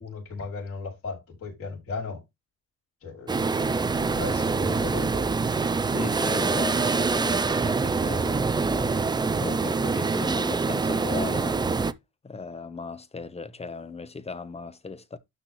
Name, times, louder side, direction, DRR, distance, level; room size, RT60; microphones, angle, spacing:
voice 1, 0.0-2.2 3.0-5.4, left 4 dB, 45° left, 5.8 m, -36 dB
sound 1, 3.3-11.9, right 4 dB, 15° right, 0.4 m, -25 dB
voice 2, 5.9-11.6 12.2-15.2, left 4 dB, 20° left, 0.9 m, -37 dB
12.0 x 4.2 x 3.1 m
cardioid pair, 135°, 33 cm